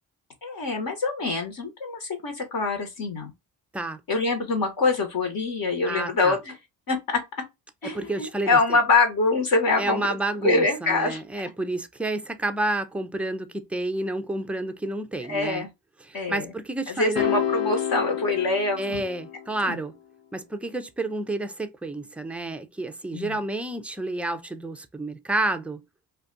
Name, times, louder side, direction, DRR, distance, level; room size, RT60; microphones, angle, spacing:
voice 1, 0.4-3.3 4.1-6.5 6.9-7.2 7.8-10.0 10.4-11.2 15.3-15.7 16.1-16.5 16.9-19.0 19.6-19.8 23.1-23.4, left 3 dB, 50° left, 1.0 m, -25 dB
voice 2, 5.8-6.4 7.8-8.6 9.8-15.7 16.0-17.2 18.8-19.9 20.3-25.8, right 2 dB, 5° right, 0.4 m, -30 dB
sound 1, 17.2-19.6, left 9 dB, 70° left, 0.6 m, -28 dB
2.4 x 2.3 x 3.7 m
supercardioid pair, 55°, 45 cm